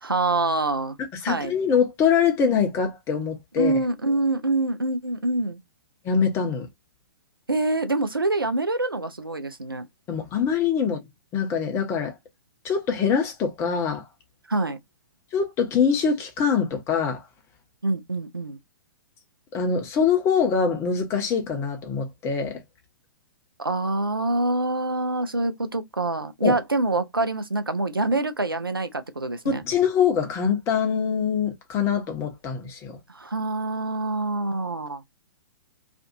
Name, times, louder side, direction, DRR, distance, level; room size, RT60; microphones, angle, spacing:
voice 1, 0.0-1.0 1.3-1.5 3.6-5.6 7.5-9.9 14.5-14.8 17.8-18.6 23.6-29.6 33.1-35.0, right 2 dB, 90° right, 0.5 m, -25 dB
voice 2, 1.2-3.7 6.0-6.7 10.1-11.0 11.3-12.1 12.6-14.0 15.3-17.2 19.5-22.6 26.4-26.6 29.4-33.0, left 6 dB, 25° left, 0.8 m, -24 dB
2.5 x 2.5 x 2.6 m
figure-of-eight pair, 115°, 11 cm